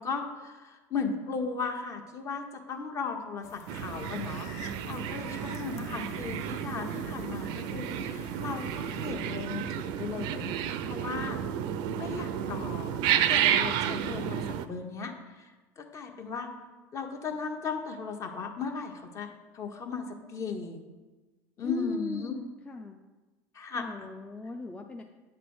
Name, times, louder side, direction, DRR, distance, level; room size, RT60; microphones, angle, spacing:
voice 1, 0.0-11.4 11.9-16.5 16.9-20.8 21.6-22.4 23.5-24.1, left 5 dB, 40° left, 4 dB, 1.1 m, -36 dB
sound 1, 3.4-9.1, left 5 dB, 80° left, 0.7 m, -51 dB
sound 2, 3.7-14.7, right 9 dB, 60° right, 0.5 m, -31 dB
voice 2, 21.6-23.0 23.7-25.0, left 2 dB, 15° left, 2 dB, 0.5 m, -38 dB
8.5 x 3.3 x 6.2 m, 1.2 s
supercardioid pair, 95°, 8 cm